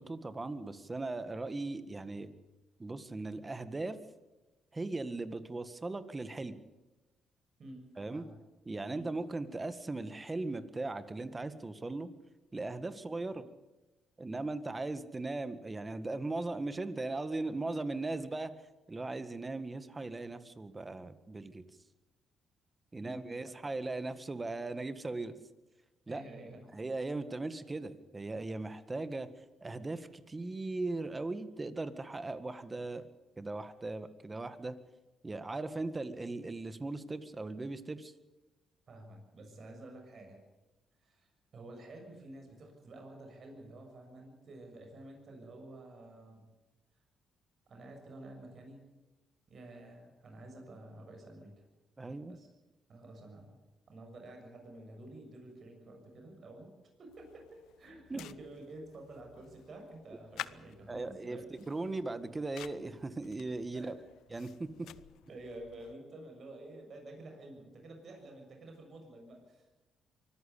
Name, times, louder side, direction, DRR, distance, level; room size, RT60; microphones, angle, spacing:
voice 1, 0.0-2.3 2.8-4.0 4.7-6.6 8.0-8.3 8.7-12.1 12.5-13.5 14.2-18.5 18.9-21.6 22.9-25.4 26.1-26.2 26.7-29.3 29.6-33.1 33.4-34.8 35.2-38.1 52.0-52.4 58.1-58.2 60.9-61.4 61.7-63.9 64.3-64.7, right 2 dB, 20° right, 12 dB, 1.8 m, -38 dB
voice 2, 23.0-23.7 26.1-26.8 27.3-27.4 38.9-40.4 41.0-46.5 47.7-48.8 49.5-51.6 52.3-52.5 52.9-53.6 53.9-56.7 57.0-61.5 63.7-64.0 64.8-64.9 65.3-69.7, right 2 dB, 50° right, 2 dB, 6.7 m, -50 dB
sound 1, 57.1-65.9, left 13 dB, 85° left, 0.7 m, -52 dB
24.5 x 14.5 x 8.5 m, 1.1 s
cardioid pair, 90°, 0 cm